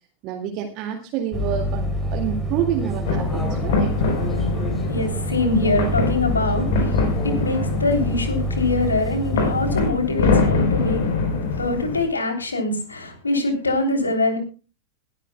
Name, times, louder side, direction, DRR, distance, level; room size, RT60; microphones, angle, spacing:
voice 1, 0.2-3.9, right 9 dB, 40° right, 2 dB, 2.2 m, -28 dB
sound 1, 1.3-9.9, right 1 dB, ahead, 3.8 m, -27 dB
sound 2, 3.0-12.0, left 4 dB, 55° left, 4.1 m, -24 dB
voice 2, 4.9-11.0 11.5-14.4, left 2 dB, 75° left, 4 dB, 3.3 m, -23 dB
21.0 x 12.5 x 2.3 m, 0.33 s
figure-of-eight pair, 90°, 0 cm